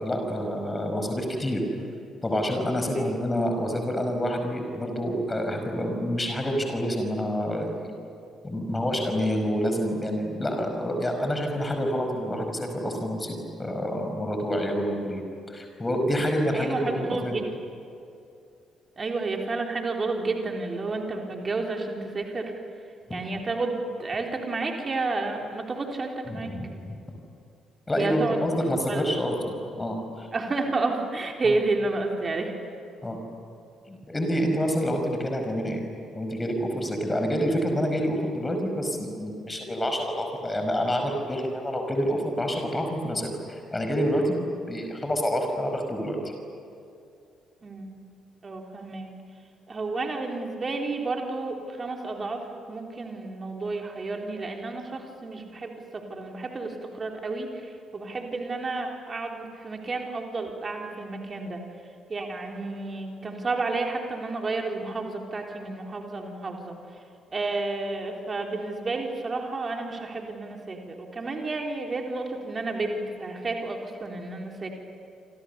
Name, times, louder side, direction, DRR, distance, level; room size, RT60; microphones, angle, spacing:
voice 1, 0.0-1.6 2.2-8.0 8.4-17.4 23.1-23.2 26.3-27.0 27.9-30.3 31.4-31.6 33.0-33.2 33.9-35.8 36.1-46.3, equal, 20° left, 4 dB, 5.3 m, -28 dB
voice 2, 16.5-17.5 19.0-22.5 23.1-26.5 27.9-28.6 28.9-29.2 30.3-32.5 47.6-48.0 48.4-49.1 49.7-52.4 52.7-61.6 62.1-66.8 67.3-74.7, right 3 dB, 30° right, 2 dB, 3.9 m, -31 dB
28.0 x 27.5 x 7.0 m, 2.5 s
figure-of-eight pair, 45°, 0 cm